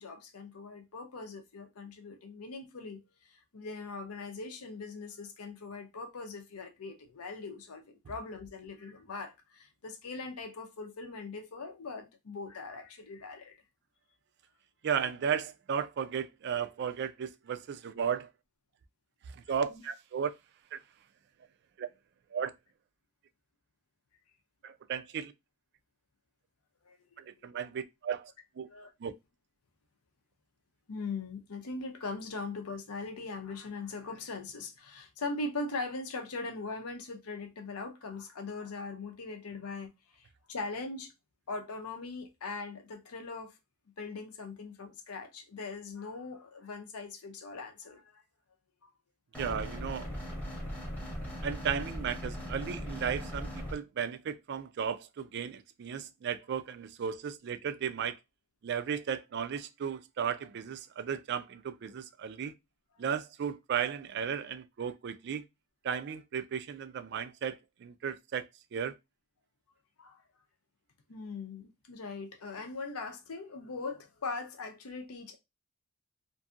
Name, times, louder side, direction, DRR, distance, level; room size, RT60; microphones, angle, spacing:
voice 1, 0.0-3.0 3.3-13.6 19.6-19.8 26.9-27.0 28.6-28.9 30.9-41.1 41.5-43.5 44.0-48.2 48.8-48.9 70.0-70.2 71.1-75.4, left 3 dB, 85° left, 0.6 m, -41 dB
voice 2, 14.8-18.3 19.3-20.3 20.7-20.8 21.8-21.9 22.3-22.5 24.6-25.3 27.2-28.3 28.6-28.7 29.0-29.1 49.4-50.1 51.4-58.2 58.6-62.5 63.0-65.4 65.8-68.5 68.7-68.9, right 7 dB, 50° right, 0.3 m, -35 dB
sound 1, 49.3-53.7, equal, 5° left, 0.8 m, -39 dB
2.6 x 2.6 x 2.4 m
head